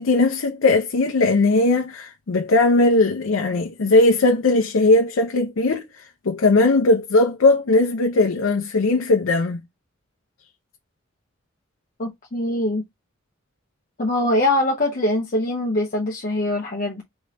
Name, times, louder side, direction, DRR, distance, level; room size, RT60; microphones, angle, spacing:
voice 1, 0.0-9.6, left 2 dB, 85° left, 0.6 m, -18 dB
voice 2, 12.0-12.9 14.0-17.0, left 1 dB, 45° left, 0.8 m, -23 dB
3.9 x 3.3 x 3.0 m
head